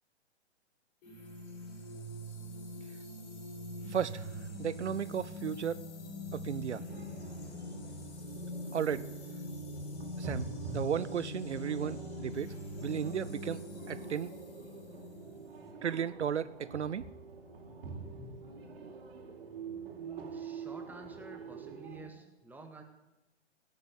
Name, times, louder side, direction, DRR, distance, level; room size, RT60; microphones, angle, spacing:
sound 1, 1.0-15.7, left 1 dB, 40° left, 5.1 m, -43 dB
voice 1, 3.9-4.3 4.6-5.8 6.3-6.8 8.7-9.1 10.2-10.5 10.7-12.5 12.8-13.6 13.9-14.3 15.8-17.1, right 8 dB, 80° right, 18 dB, 0.6 m, -34 dB
sound 2, 6.9-22.1, right 4 dB, 60° right, 4.1 m, -46 dB
voice 2, 20.0-22.8, right 3 dB, 5° right, 4 dB, 1.9 m, -51 dB
16.5 x 9.1 x 9.2 m, 0.98 s
figure-of-eight pair, 125°, 35 cm